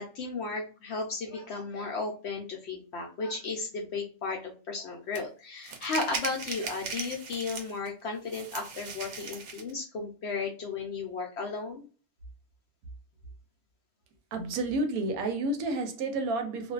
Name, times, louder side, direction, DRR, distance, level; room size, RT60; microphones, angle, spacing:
voice 1, 0.0-11.8, left 4 dB, 65° left, 0.7 m, -34 dB
sound 1, 5.1-5.2 5.6-7.9 8.3-9.7, right 5 dB, 65° right, 0.8 m, -38 dB
voice 2, 14.3-16.7, right 2 dB, 85° right, 1.1 m, -30 dB
2.5 x 2.2 x 2.3 m
omnidirectional pair, 1.5 m